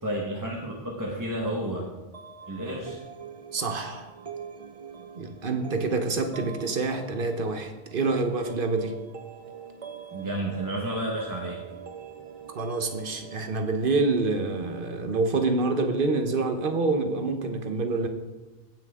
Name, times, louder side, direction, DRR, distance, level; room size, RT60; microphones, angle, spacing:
voice 1, 0.0-1.9 2.5-3.0 10.1-11.6, right 1 dB, 20° right, -3 dB, 1.3 m, -31 dB
sound 1, 2.1-14.7, right 6 dB, 40° right, 0.7 m, -44 dB
voice 2, 3.5-4.1 5.1-9.0 12.5-18.1, right 3 dB, 60° right, 6 dB, 1.1 m, -27 dB
16.5 x 6.0 x 3.6 m, 1.2 s
omnidirectional pair, 1.0 m